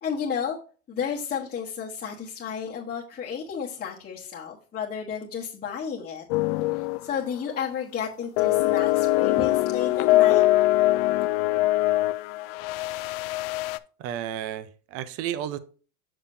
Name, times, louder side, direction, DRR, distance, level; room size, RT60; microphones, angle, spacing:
voice 1, 0.0-0.6 0.9-6.2 6.7-10.4, left 7 dB, 20° left, -4 dB, 1.3 m, -32 dB
sound 1, 6.3-7.1 7.4-7.6 8.4-13.8, left 16 dB, 45° left, 0.4 m, -22 dB
voice 2, 14.0-15.6, right 10 dB, 35° right, 14 dB, 0.6 m, -32 dB
7.5 x 7.0 x 2.7 m, 0.38 s
supercardioid pair, 135°, 45 cm